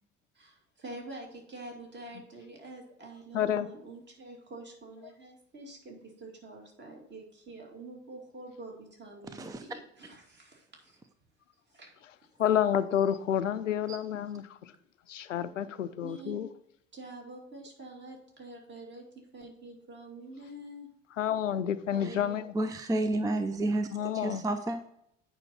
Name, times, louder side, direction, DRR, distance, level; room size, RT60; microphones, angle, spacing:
voice 1, 0.3-11.0 11.7-11.9 16.0-16.5 16.9-20.9 21.9-22.4, right 2 dB, 30° right, 0 dB, 2.6 m, -46 dB
voice 2, 3.3-3.7 12.4-14.7 15.1-16.5 21.2-22.5 23.9-24.4, left 9 dB, 80° left, 13 dB, 0.6 m, -29 dB
voice 3, 9.3-9.6 13.9-14.0 22.0-22.1 22.5-24.9, right 2 dB, 10° right, 9 dB, 0.6 m, -31 dB
8.9 x 5.6 x 4.2 m, 0.72 s
figure-of-eight pair, 60°, 37 cm